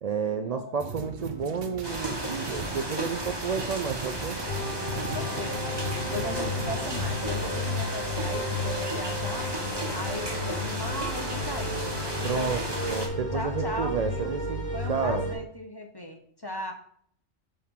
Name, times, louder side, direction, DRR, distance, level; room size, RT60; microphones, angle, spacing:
voice 1, 0.0-4.4 12.2-12.6 12.9-14.6 14.9-15.3, right 6 dB, 75° right, 6 dB, 0.3 m, -31 dB
sound 1, 0.8-7.4, right 5 dB, 55° right, 0.8 m, -40 dB
sound 2, 1.8-13.1, right 1 dB, 20° right, 1.3 m, -34 dB
sound 3, 4.5-15.3, left 2 dB, 45° left, 1.5 m, -33 dB
voice 2, 5.0-5.8 6.1-9.5 9.9-11.8 12.2-12.5 13.3-14.4 14.7-16.7, left 1 dB, 25° left, 4 dB, 0.6 m, -37 dB
8.5 x 4.3 x 3.7 m, 0.63 s
omnidirectional pair, 1.3 m